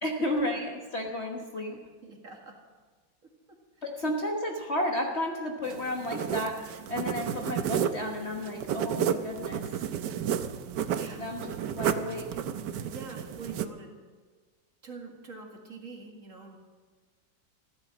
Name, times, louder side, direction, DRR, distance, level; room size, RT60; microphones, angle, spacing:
voice 1, 0.0-1.8 3.8-9.6 11.2-12.3, left 1 dB, 40° left, 1 dB, 1.5 m, -32 dB
voice 2, 2.0-2.5 10.9-11.2 12.8-14.0 14.8-16.6, right 4 dB, 45° right, 1 dB, 2.4 m, -45 dB
sound 1, 5.7-13.7, right 8 dB, 70° right, 1.3 m, -32 dB
15.0 x 13.0 x 6.2 m, 1.4 s
omnidirectional pair, 2.0 m